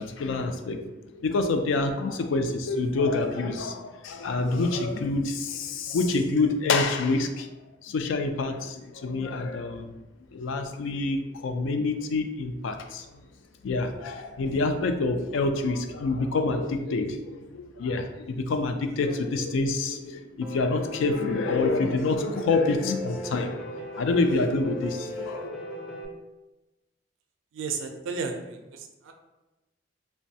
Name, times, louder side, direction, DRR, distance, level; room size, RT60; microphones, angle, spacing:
voice 1, 0.0-7.5 7.8-10.0 10.3-13.1 13.6-23.7 24.0-25.5, left 3 dB, 90° left, 7 dB, 0.3 m, -27 dB
Piano, 20.4-26.0, left 1 dB, ahead, 0.4 m, -37 dB
voice 2, 27.5-29.1, right 4 dB, 90° right, 4 dB, 0.4 m, -33 dB
3.0 x 2.2 x 2.6 m, 1.0 s
head